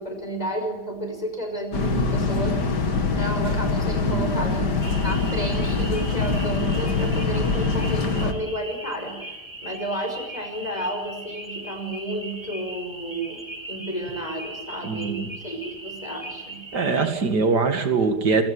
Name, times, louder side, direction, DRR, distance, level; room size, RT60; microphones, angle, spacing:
voice 1, 0.0-2.6 3.2-9.2 9.6-16.6, right 1 dB, 25° left, 5 dB, 5.6 m, -32 dB
sound 1, 1.7-8.3, left 3 dB, 85° left, 2.7 m, -24 dB
voice 2, 4.0-4.4 14.8-15.3 16.7-18.4, right 4 dB, 80° right, 7 dB, 2.7 m, -23 dB
sound 2, 4.8-17.1, right 2 dB, 15° right, 2.5 m, -39 dB
27.0 x 16.0 x 9.8 m, 1.1 s
omnidirectional pair, 1.8 m